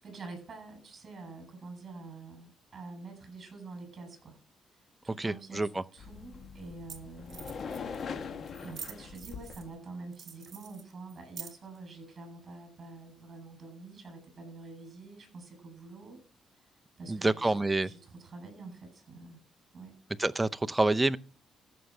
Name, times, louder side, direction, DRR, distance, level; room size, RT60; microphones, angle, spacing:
voice 1, 0.0-4.4 5.0-7.5 8.6-16.2 17.0-17.6 17.8-19.4 19.7-20.0, right 3 dB, 40° right, 7.7 m, -46 dB
voice 2, 5.2-5.8 17.1-17.9 20.2-21.2, right 2 dB, 15° right, 0.5 m, -27 dB
sound 1, 6.0-9.7, left 6 dB, 55° left, 1.4 m, -42 dB
sound 2, 6.6-6.7 6.9-7.0 7.3-8.0 8.5-9.7 10.1-11.8, right 7 dB, 55° right, 2.8 m, -46 dB
14.5 x 6.5 x 6.0 m
cardioid pair, 90°, 0 cm